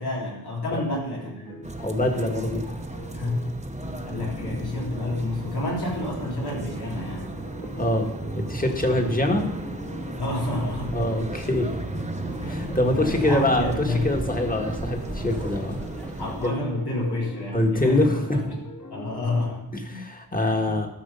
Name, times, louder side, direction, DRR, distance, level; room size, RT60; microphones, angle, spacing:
voice 1, 0.0-1.7 3.1-3.5 4.0-7.4 10.2-11.0 12.4-14.1 16.2-18.5 18.9-19.7 20.4-20.8, left 2 dB, 85° left, -3 dB, 3.4 m, -29 dB
sound 1, 0.9-19.5, left 1 dB, 55° left, 2.2 m, -42 dB
sound 2, 1.6-16.5, right 2 dB, 20° right, 0.9 m, -35 dB
voice 2, 1.8-2.6 7.7-9.5 10.9-12.0 12.5-15.8 16.4-16.5 17.5-18.2 19.9-20.9, left 1 dB, 20° left, 3 dB, 1.6 m, -24 dB
sound 3, 10.2-16.4, equal, 5° left, 1.1 m, -41 dB
13.0 x 6.3 x 5.5 m, 0.80 s
wide cardioid pair, 90°, 38 cm